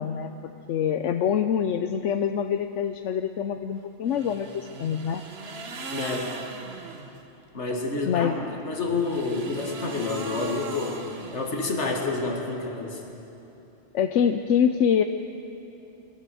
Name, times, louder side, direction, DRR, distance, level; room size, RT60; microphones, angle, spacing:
voice 1, 0.0-5.2 8.1-8.4 13.9-15.0, left 8 dB, 85° left, 8 dB, 1.0 m, -25 dB
sound 1, 4.1-7.2 8.7-12.0, right 3 dB, 60° right, 1.5 m, -39 dB
voice 2, 5.9-6.3 7.5-11.0 11.3-13.0, left 3 dB, 70° left, 1 dB, 2.3 m, -29 dB
22.0 x 16.5 x 7.7 m, 3.0 s
omnidirectional pair, 1.2 m